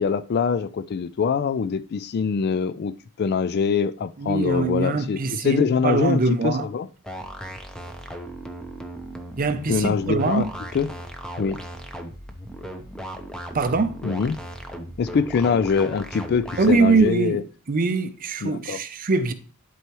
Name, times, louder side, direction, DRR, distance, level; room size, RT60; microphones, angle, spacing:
voice 1, 0.0-2.9 3.2-6.9 9.7-10.5 10.7-10.9 11.4-11.6 14.0-14.4 15.0-17.4 18.4-18.8, left 6 dB, 45° left, 0.3 m, -23 dB
voice 2, 4.2-6.7 9.4-10.5 13.5-14.0 16.6-17.4 17.7-19.3, right 3 dB, 40° right, 0.5 m, -22 dB
sound 1, 7.0-17.1, equal, 5° left, 0.7 m, -37 dB
11.0 x 4.6 x 3.0 m
head